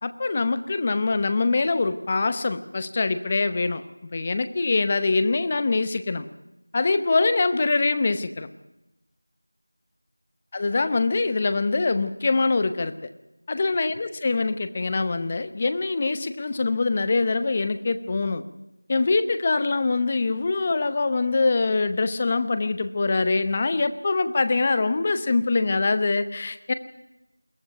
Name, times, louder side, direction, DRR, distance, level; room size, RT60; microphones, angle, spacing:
voice 1, 0.0-3.8 4.1-6.3 6.7-8.5 10.5-12.9 13.5-18.4 18.9-26.7, left 3 dB, 15° left, 12 dB, 0.8 m, -24 dB
22.0 x 16.5 x 9.0 m, 0.95 s
figure-of-eight pair, 175°, 0 cm